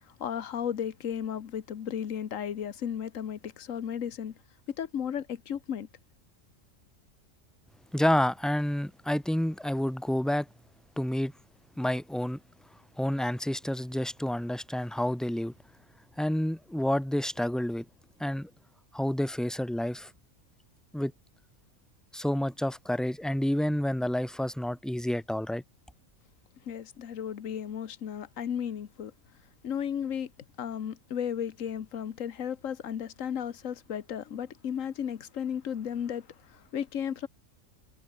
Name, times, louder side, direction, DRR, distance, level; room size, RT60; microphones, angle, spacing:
voice 1, 0.2-4.3 4.8-5.9 26.7-29.1 29.6-30.3 30.6-37.3, left 8 dB, 80° left, 1.5 m, -34 dB
voice 2, 7.9-10.5 11.0-11.3 11.8-12.4 13.0-15.5 16.2-17.9 18.2-18.5 18.9-20.1 20.9-21.1 22.1-25.6, left 1 dB, ahead, 1.4 m, -29 dB
omnidirectional pair, 1.3 m